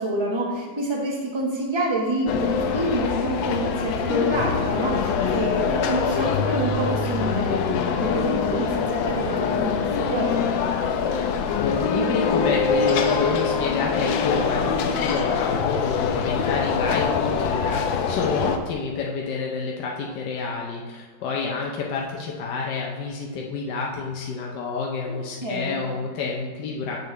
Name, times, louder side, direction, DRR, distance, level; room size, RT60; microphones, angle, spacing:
voice 1, 0.0-10.6 25.1-25.8, right 1 dB, 20° right, -2 dB, 1.0 m, -28 dB
sound 1, 2.3-18.6, left 6 dB, 85° left, 1.4 m, -24 dB
voice 2, 11.6-27.0, left 4 dB, 65° left, -1 dB, 1.3 m, -29 dB
7.9 x 6.9 x 3.2 m, 1.5 s
omnidirectional pair, 2.1 m